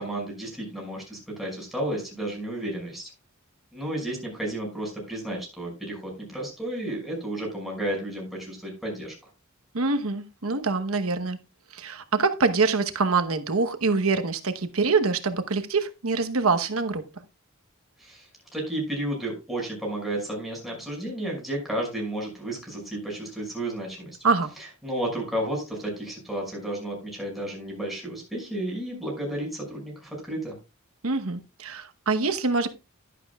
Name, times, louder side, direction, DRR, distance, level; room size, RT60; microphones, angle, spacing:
voice 1, 0.0-3.1 3.7-9.1 18.0-18.3 18.5-24.2 24.8-30.6, right 1 dB, ahead, 5.9 m, -32 dB
voice 2, 9.7-11.4 11.7-17.0 24.2-24.5 31.0-32.7, right 4 dB, 90° right, 1.1 m, -25 dB
11.5 x 11.0 x 2.3 m
head